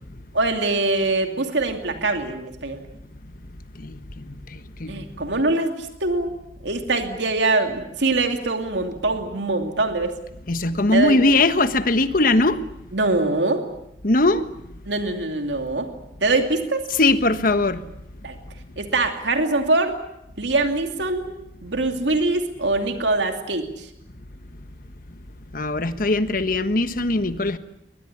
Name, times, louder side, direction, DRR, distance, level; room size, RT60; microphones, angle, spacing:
voice 1, 0.3-2.8 4.9-6.3 6.6-10.1 10.9-11.2 12.9-13.6 14.9-15.9 16.2-16.8 18.2-18.4 18.8-19.9 20.4-21.3 21.6-23.6, right 2 dB, 85° right, 5 dB, 2.7 m, -23 dB
voice 2, 10.5-12.6 14.0-14.4 17.0-17.8 25.5-27.6, left 2 dB, 50° left, 11 dB, 1.4 m, -20 dB
22.5 x 20.0 x 10.0 m, 0.82 s
head